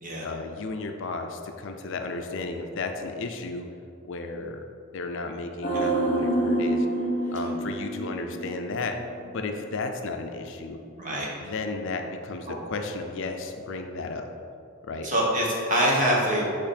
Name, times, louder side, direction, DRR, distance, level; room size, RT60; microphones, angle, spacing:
voice 1, 0.2-3.7 4.0-4.6 4.9-6.9 7.3-9.0 9.2-10.8 11.4-14.3 14.8-15.1, left 3 dB, 60° left, 5 dB, 0.5 m, -33 dB
sound 1, 5.6-8.9 9.2-9.3, right 1 dB, 40° left, 1.0 m, -27 dB
voice 2, 11.0-11.3 15.0-16.5, equal, 40° right, -4 dB, 1.4 m, -25 dB
8.5 x 3.1 x 4.2 m, 2.5 s
head